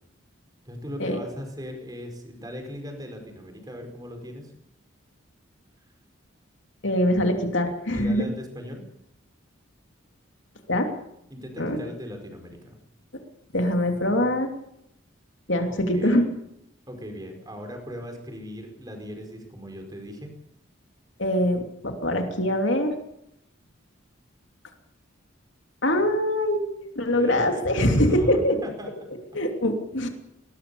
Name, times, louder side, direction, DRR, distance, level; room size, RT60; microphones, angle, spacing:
voice 1, 0.6-4.5 7.9-8.8 11.3-12.8 15.7-16.2 16.9-20.3 27.1-29.2, equal, 20° right, 4 dB, 5.0 m, -38 dB
voice 2, 6.8-8.3 10.7-10.9 11.6-11.8 13.5-14.5 15.5-16.2 21.2-22.9 25.8-26.6 26.9-28.6 29.3-30.1, left 1 dB, 65° left, 4 dB, 3.0 m, -23 dB
21.0 x 20.0 x 7.1 m, 0.80 s
head